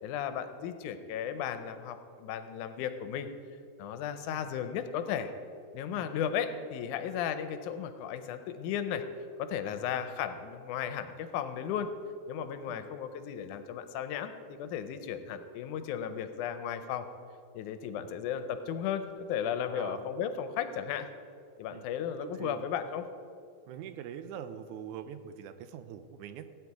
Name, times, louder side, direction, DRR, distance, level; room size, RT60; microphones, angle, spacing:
voice 1, 0.0-3.3 3.8-5.3 5.7-9.0 9.4-11.9 12.3-17.1 17.5-21.1 21.6-23.1, left 8 dB, 85° left, 10 dB, 2.2 m, -35 dB
voice 2, 19.7-20.1 21.7-21.8 22.2-22.7 23.7-26.6, right 9 dB, 90° right, 11 dB, 2.1 m, -44 dB
16.0 x 9.2 x 4.8 m, 2.5 s
omnidirectional pair, 3.5 m